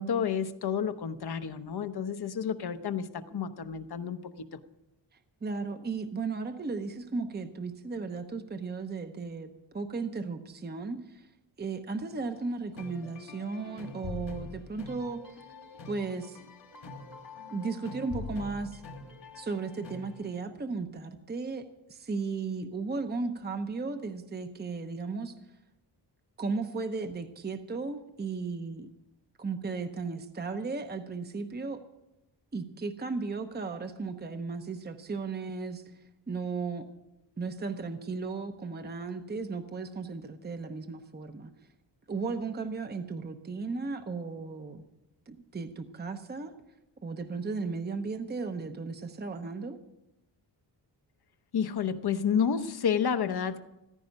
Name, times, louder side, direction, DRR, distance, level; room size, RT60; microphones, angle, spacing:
voice 1, 0.0-4.6 51.5-53.6, left 7 dB, 60° left, 10 dB, 0.9 m, -30 dB
voice 2, 5.4-9.5 9.7-11.3 11.6-15.2 15.9-16.4 17.5-18.8 19.4-21.6 21.9-25.4 26.4-28.9 29.4-31.8 32.5-35.8 36.3-36.9 37.4-41.5 42.1-44.8 45.3-46.5 47.0-49.8, right 4 dB, 20° right, 7 dB, 0.8 m, -35 dB
sound 1, 12.1-20.4, left 4 dB, 75° left, 2.4 m, -45 dB
15.0 x 14.5 x 5.4 m, 0.91 s
wide cardioid pair, 150°, 44 cm